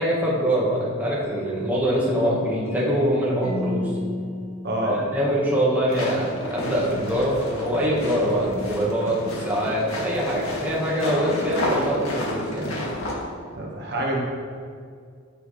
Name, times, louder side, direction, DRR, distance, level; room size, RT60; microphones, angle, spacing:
voice 1, 0.0-3.8 4.8-9.2 9.4-12.7, equal, 10° right, -6 dB, 1.5 m, -24 dB
sound 1, 1.2-5.9, equal, 30° left, 1.6 m, -33 dB
voice 2, 4.6-5.0 13.5-14.2, right 1 dB, 55° right, -2 dB, 1.5 m, -26 dB
sound 2, 5.9-13.1, left 1 dB, 90° left, 2.0 m, -30 dB
9.5 x 7.9 x 3.3 m, 2.1 s
head